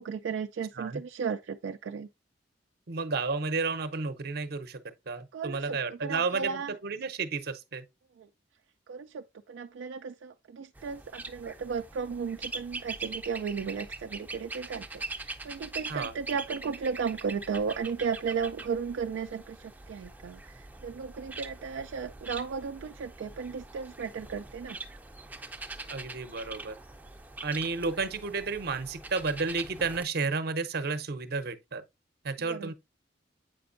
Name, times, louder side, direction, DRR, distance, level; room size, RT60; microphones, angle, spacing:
voice 1, 0.0-2.1 5.3-6.7 8.2-8.3 8.9-24.8 32.4-32.7, right 6 dB, 85° right, 0.3 m, -35 dB
voice 2, 2.9-4.8 5.1-7.8 15.9-16.1 25.9-26.7 27.4-31.8 32.2-32.7, right 4 dB, 60° right, 0.7 m, -32 dB
sound 1, 10.7-30.0, right 3 dB, 10° right, 0.5 m, -43 dB
7.7 x 5.2 x 2.5 m
head